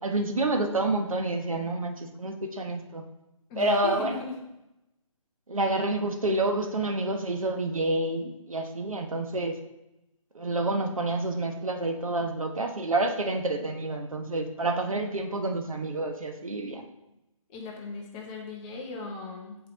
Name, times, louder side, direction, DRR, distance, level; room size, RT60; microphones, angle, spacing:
voice 1, 0.0-3.0 3.6-4.2 5.5-9.6 10.3-16.9, right 2 dB, 80° right, 4 dB, 1.1 m, -28 dB
voice 2, 3.5-4.3 17.5-19.6, left 4 dB, 15° left, 0 dB, 0.8 m, -38 dB
8.0 x 4.5 x 3.9 m, 0.92 s
figure-of-eight pair, 150°, 17 cm